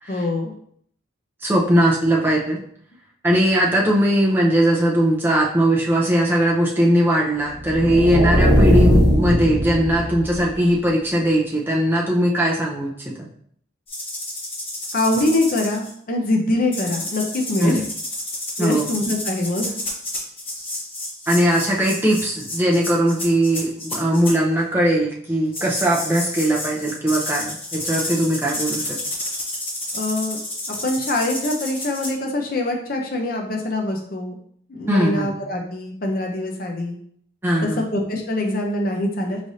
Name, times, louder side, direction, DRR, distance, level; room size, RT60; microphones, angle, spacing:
voice 1, 0.1-0.5 14.9-17.8 18.6-19.7 29.9-30.4 30.7-34.4 34.7-37.0 37.6-39.4, left 2 dB, 45° left, 2 dB, 0.6 m, -24 dB
voice 2, 1.4-2.6 3.2-13.3 17.6-17.8 18.6-18.9 21.3-29.0 34.9-35.3 37.4-37.8, right 1 dB, 10° right, -3 dB, 0.5 m, -19 dB
sound 1, 7.6-10.5, equal, 50° right, 0.9 m, -18 dB
sound 2, 13.9-15.9 16.7-24.3 25.5-32.1, left 1 dB, 30° left, 1.3 m, -30 dB
5.1 x 3.2 x 2.7 m, 0.64 s
head